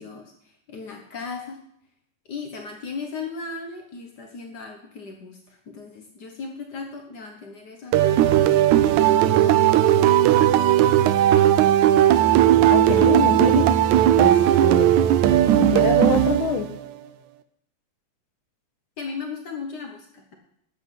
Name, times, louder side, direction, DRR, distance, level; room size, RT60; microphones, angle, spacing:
voice 1, 0.0-1.6 2.3-8.9 19.0-20.4, left 4 dB, 85° left, 2 dB, 0.9 m, -37 dB
sound 1, 7.9-16.8, right 11 dB, 80° right, 2.0 m, -17 dB
voice 2, 12.7-13.7 14.2-15.0 15.6-16.7, left 7 dB, 60° left, 7 dB, 1.3 m, -26 dB
12.0 x 7.9 x 5.4 m, 0.73 s
omnidirectional pair, 3.5 m